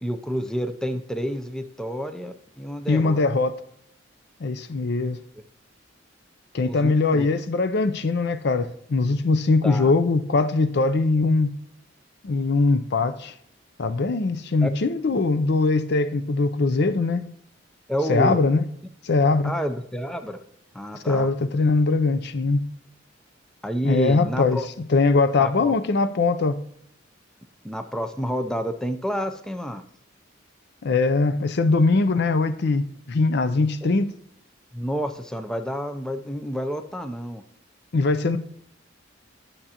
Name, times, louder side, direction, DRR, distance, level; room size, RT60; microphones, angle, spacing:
voice 1, 0.0-3.2 6.6-7.3 9.6-9.9 14.6-14.7 17.9-18.4 19.4-20.4 20.7-21.3 23.6-24.7 25.4-25.7 27.6-29.8 34.7-37.4, equal, 5° left, 0.4 m, -29 dB
voice 2, 2.9-3.5 4.4-5.2 6.5-11.5 12.2-13.3 13.8-17.2 18.1-18.6 19.0-19.5 21.1-22.6 23.8-24.6 24.9-26.6 30.8-34.1 37.9-38.4, left 3 dB, 55° left, 0.5 m, -21 dB
11.0 x 6.6 x 2.9 m
head